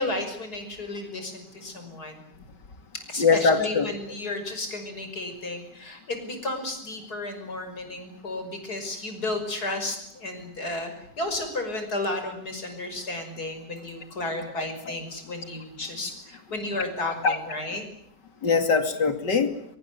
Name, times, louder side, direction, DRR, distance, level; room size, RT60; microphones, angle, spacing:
voice 1, 0.0-2.2 2.9-17.9, left 2 dB, 65° left, 7 dB, 6.3 m, -33 dB
voice 2, 3.2-3.9 14.6-15.0 17.2-17.4 18.4-19.5, left 5 dB, 90° left, 8 dB, 3.1 m, -22 dB
24.5 x 23.0 x 9.5 m, 0.70 s
omnidirectional pair, 1.8 m